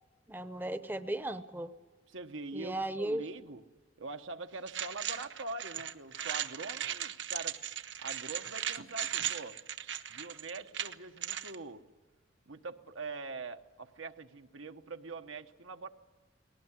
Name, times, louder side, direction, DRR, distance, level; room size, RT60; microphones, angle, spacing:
voice 1, 0.3-1.7 2.5-3.2, right 1 dB, 10° right, 11 dB, 0.7 m, -36 dB
voice 2, 2.1-3.6 4.0-7.6 8.0-9.6 10.1-11.8 12.5-15.9, right 3 dB, 90° right, 7 dB, 1.2 m, -43 dB
sound 1, 4.7-11.6, right 10 dB, 65° right, 0.9 m, -37 dB
19.5 x 18.0 x 9.7 m, 1.4 s
head